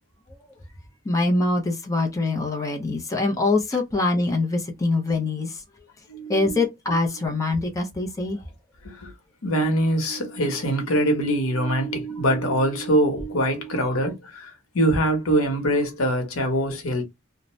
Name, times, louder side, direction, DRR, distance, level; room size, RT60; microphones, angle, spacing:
voice 1, 1.1-5.6 6.3-8.4, left 2 dB, 15° left, 0.5 m, -24 dB
voice 2, 6.1-6.6 8.8-9.1 9.4-17.0, right 1 dB, 85° left, 0.9 m, -23 dB
2.6 x 2.1 x 3.0 m
head